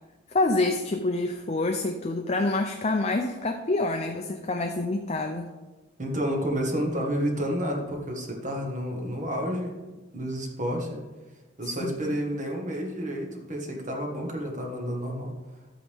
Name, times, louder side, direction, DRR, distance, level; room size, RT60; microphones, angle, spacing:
voice 1, 0.3-5.5 11.6-12.2, left 2 dB, 35° left, 5 dB, 0.6 m, -27 dB
voice 2, 6.0-9.7 10.1-11.0 11.6-15.3, equal, 40° right, 0 dB, 1.7 m, -30 dB
12.5 x 8.6 x 3.6 m, 1.2 s
head